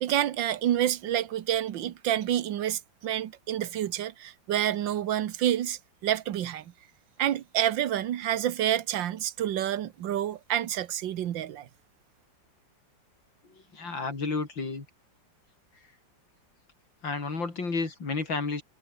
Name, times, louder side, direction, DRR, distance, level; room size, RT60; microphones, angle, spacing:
voice 1, 0.0-6.6 7.2-11.7, right 11 dB, 80° right, 1.7 m, -28 dB
voice 2, 13.5-14.9 17.0-18.6, left 4 dB, 85° left, 4.9 m, -31 dB
omnidirectional pair, 2.0 m